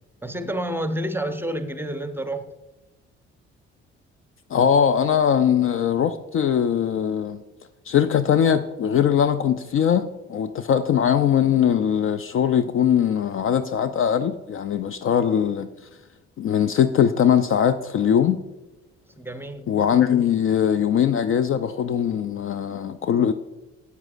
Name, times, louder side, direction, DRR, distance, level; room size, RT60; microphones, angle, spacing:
voice 1, 0.2-2.5 19.2-19.7, right 1 dB, 5° right, 9 dB, 0.7 m, -29 dB
voice 2, 4.5-7.4 7.9-15.7 16.4-18.4 19.7-23.3, left 8 dB, 40° left, 11 dB, 0.4 m, -21 dB
12.0 x 8.1 x 2.5 m, 1.0 s
figure-of-eight pair, 40°, 33 cm